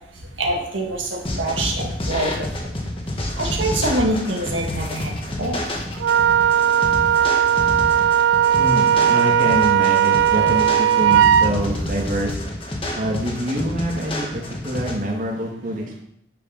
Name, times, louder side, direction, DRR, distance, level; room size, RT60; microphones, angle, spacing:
voice 1, 0.4-2.5 3.4-5.1 5.4-5.6, right 1 dB, 85° right, 0 dB, 1.9 m, -24 dB
sound 1, 1.2-14.9, left 1 dB, 30° left, 1.6 m, -29 dB
Wind instrument woodwind instrument, 6.0-11.5, right 9 dB, 70° right, 0.3 m, -17 dB
voice 2, 8.6-12.3 13.0-16.0, right 1 dB, 45° right, -2 dB, 2.0 m, -25 dB
9.9 x 6.0 x 5.6 m, 0.72 s
head